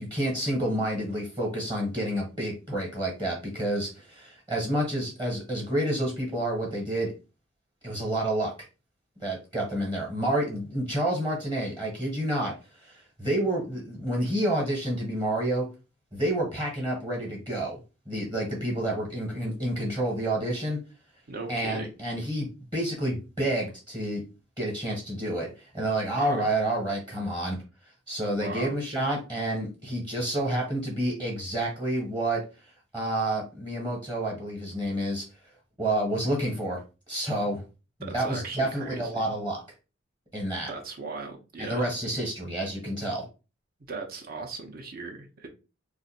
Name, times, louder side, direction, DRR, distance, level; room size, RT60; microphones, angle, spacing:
voice 1, 0.0-7.1 7.8-8.5 9.2-12.5 12.8-15.7 16.1-17.8 18.1-20.8 21.5-24.2 24.6-27.6 28.1-32.4 32.9-35.2 35.8-36.8 37.1-37.6 38.0-39.6 40.3-40.7 41.6-43.2, right 1 dB, 20° right, -3 dB, 1.0 m, -29 dB
voice 2, 21.3-21.9 26.2-26.4 28.4-28.8 38.0-39.3 40.7-41.9 43.9-45.5, right 3 dB, 50° right, 3 dB, 0.6 m, -38 dB
2.5 x 2.4 x 4.0 m, 0.31 s
head